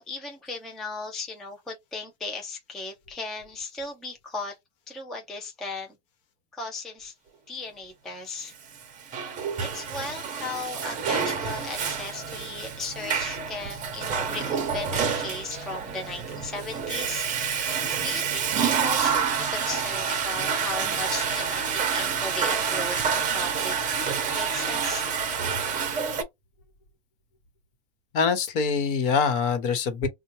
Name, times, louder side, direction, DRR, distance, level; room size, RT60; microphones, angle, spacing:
voice 1, 0.0-4.6 4.9-6.0 6.5-7.1 7.5-8.5 9.6-23.8 24.0-25.1, left 3 dB, ahead, 0.3 m, -36 dB
Water / Toilet flush, 8.7-26.2, right 6 dB, 25° right, 0.8 m, -28 dB
voice 2, 28.1-30.1, left 5 dB, 55° left, 1.1 m, -24 dB
4.3 x 2.2 x 3.0 m
supercardioid pair, 145°, 32 cm